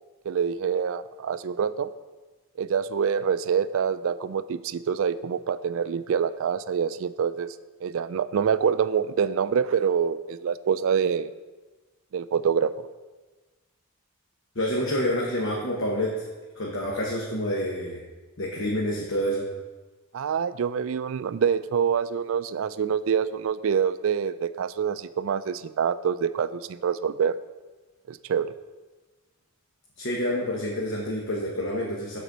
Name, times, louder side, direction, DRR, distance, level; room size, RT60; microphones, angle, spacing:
voice 1, 0.2-1.9 2.6-7.6 7.8-11.3 12.1-12.7 20.1-27.4 28.1-28.5, right 7 dB, 60° right, 14 dB, 0.3 m, -26 dB
voice 2, 14.5-16.2 16.6-18.0 18.4-19.5 30.0-32.2, equal, 55° left, -3 dB, 1.1 m, -28 dB
7.8 x 4.3 x 6.6 m, 1.2 s
head